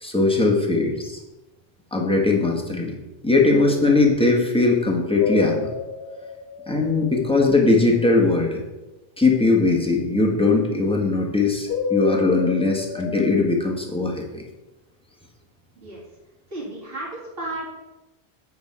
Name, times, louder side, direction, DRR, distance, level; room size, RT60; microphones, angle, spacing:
voice 1, 0.0-1.2 1.9-3.0 3.2-5.7 6.7-8.6 9.2-14.4, left 3 dB, 5° left, -1 dB, 1.2 m, -20 dB
sound 1, 5.2-7.6 11.7-13.3, left 5 dB, 70° left, 0.8 m, -29 dB
voice 2, 16.5-17.7, right 1 dB, 60° right, -6 dB, 3.0 m, -33 dB
8.0 x 4.6 x 5.4 m, 1.0 s
omnidirectional pair, 1.1 m